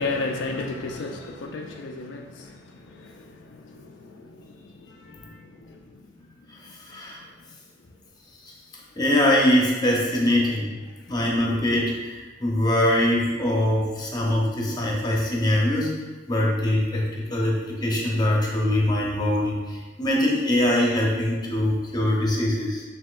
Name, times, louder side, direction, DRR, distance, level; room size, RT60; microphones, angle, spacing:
voice 1, 0.0-2.6 2.9-5.8, left 3 dB, 75° left, 2 dB, 0.4 m, -34 dB
voice 2, 6.5-7.2 8.4-8.5 8.9-10.8 11.1-16.0 16.3-22.8, left 1 dB, 25° left, -3 dB, 0.7 m, -23 dB
5.7 x 2.8 x 2.4 m, 1.3 s
head